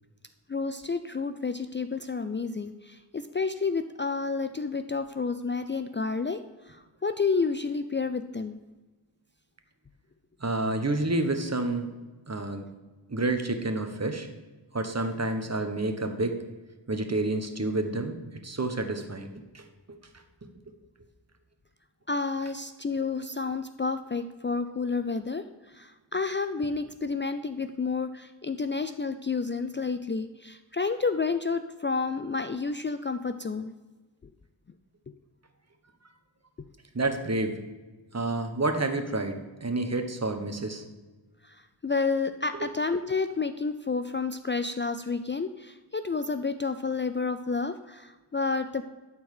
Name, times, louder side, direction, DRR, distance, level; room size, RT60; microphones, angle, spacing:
voice 1, 0.5-8.6 22.1-33.7 41.4-48.8, left 4 dB, 25° left, 10 dB, 0.4 m, -30 dB
voice 2, 10.4-11.9 12.3-12.7 13.1-14.3 14.7-16.4 16.9-19.3 19.5-19.6 36.9-37.6 38.1-40.8 42.6-42.7, right 2 dB, 35° right, 6 dB, 1.3 m, -29 dB
12.0 x 4.5 x 6.6 m, 1.2 s
wide cardioid pair, 65°, 44 cm